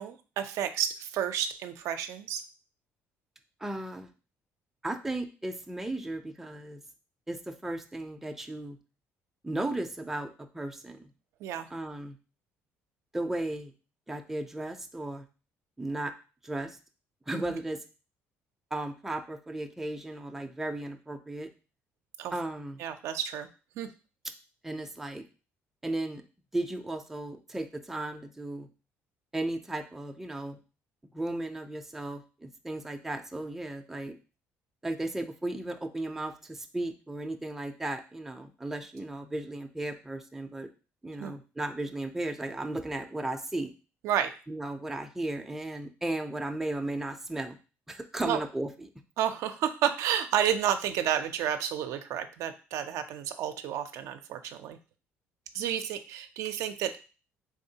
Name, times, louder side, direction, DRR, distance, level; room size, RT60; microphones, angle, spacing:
voice 1, 0.0-2.4 11.4-11.7 17.3-17.5 22.2-22.3 22.8-23.5 23.8-23.9 41.2-41.3 44.0-44.3 48.2-48.4 49.2-54.8 55.5-57.0, right 10 dB, 75° right, 8 dB, 0.4 m, -31 dB
voice 2, 3.6-4.1 4.8-6.8 7.3-8.8 9.4-11.1 11.7-12.2 13.1-13.7 14.1-15.3 15.8-16.1 16.4-16.8 17.3-17.8 18.7-21.5 22.3-22.8 24.6-25.2 25.8-26.2 26.5-28.7 29.3-30.6 31.1-34.2 34.8-40.7 41.0-43.7 44.5-47.6 47.9-48.9, right 1 dB, 5° right, 5 dB, 0.4 m, -35 dB
3.5 x 3.5 x 2.7 m, 0.34 s
cardioid pair, 110°, 5 cm